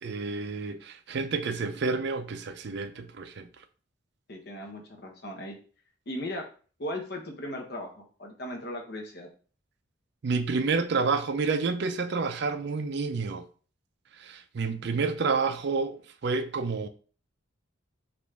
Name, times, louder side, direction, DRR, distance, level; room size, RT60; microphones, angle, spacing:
voice 1, 0.0-3.5 10.2-13.4 14.2-16.9, right 4 dB, 55° right, 0.4 m, -29 dB
voice 2, 4.3-5.6 6.1-6.5 6.8-9.3, left 1 dB, 55° left, 1.0 m, -37 dB
5.0 x 2.6 x 3.4 m
head